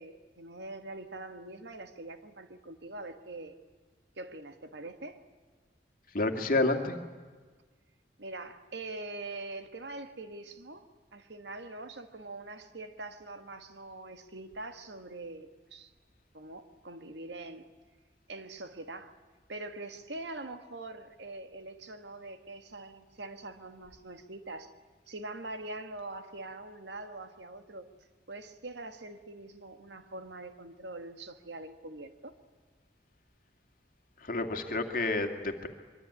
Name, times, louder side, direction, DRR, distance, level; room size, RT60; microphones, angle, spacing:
voice 1, 0.0-3.6 4.2-5.2 8.2-10.8 11.1-15.9 16.3-17.7 18.3-19.1 19.5-24.7 25.1-27.9 28.3-32.4, right 2 dB, 80° right, 8 dB, 1.7 m, -43 dB
voice 2, 6.1-7.0 34.2-35.7, left 2 dB, 50° left, 5 dB, 2.3 m, -29 dB
24.0 x 23.5 x 9.7 m, 1.4 s
head